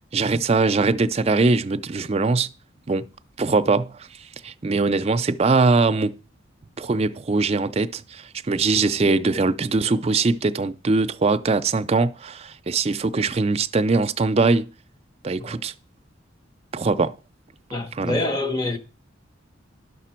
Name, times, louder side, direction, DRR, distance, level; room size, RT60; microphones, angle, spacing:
voice 1, 0.1-2.5 2.9-3.1 3.4-4.1 4.4-6.2 6.8-14.7 15.2-15.7 16.7-17.1 17.9-18.2, right 3 dB, 30° right, 0.4 m, -21 dB
voice 2, 8.7-9.1 15.4-15.6 17.7-18.8, left 2 dB, 20° left, 0.9 m, -27 dB
11.5 x 5.9 x 4.4 m
head